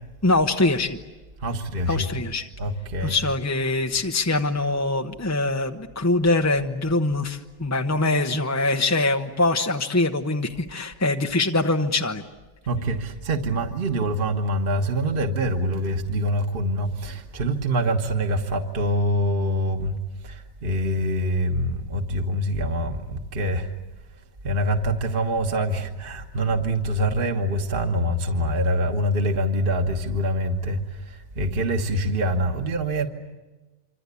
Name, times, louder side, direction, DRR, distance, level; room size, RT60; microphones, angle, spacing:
voice 1, 0.2-1.0 1.9-2.5 3.0-12.2, left 2 dB, 15° left, 5 dB, 0.5 m, -23 dB
voice 2, 1.4-2.1 2.6-3.2 12.7-23.7 24.4-33.1, equal, 35° right, 4 dB, 1.4 m, -25 dB
26.5 x 26.0 x 8.4 m, 1.1 s
omnidirectional pair, 1.8 m